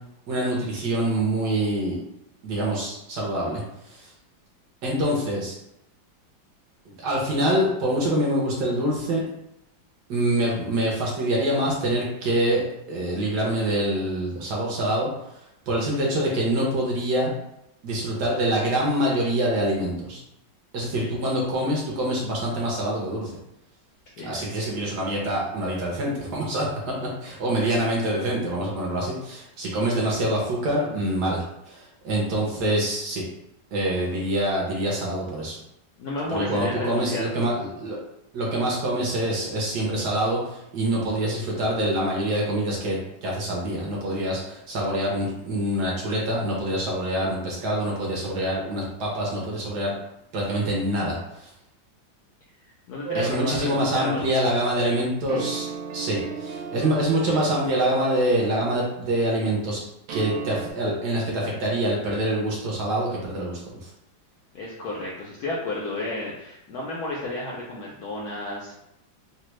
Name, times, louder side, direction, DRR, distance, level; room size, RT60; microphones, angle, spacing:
voice 1, 0.3-2.0 2.4-4.1 4.8-5.6 6.9-9.2 10.1-15.1 15.7-17.3 17.8-20.2 20.7-23.3 24.2-26.7 27.0-33.2 33.7-35.6 36.3-38.0 38.3-49.9 50.3-51.5 53.1-55.7 55.9-59.8 60.1-63.9, right 1 dB, 65° right, -3 dB, 1.2 m, -25 dB
voice 2, 36.0-37.3 52.6-54.5 64.5-68.7, left 2 dB, 75° left, -3 dB, 0.9 m, -32 dB
sound 1, 53.1-54.4 55.3-59.2 60.1-60.7, right 6 dB, 85° right, 1.4 m, -33 dB
3.3 x 2.2 x 3.0 m, 0.82 s
omnidirectional pair, 2.1 m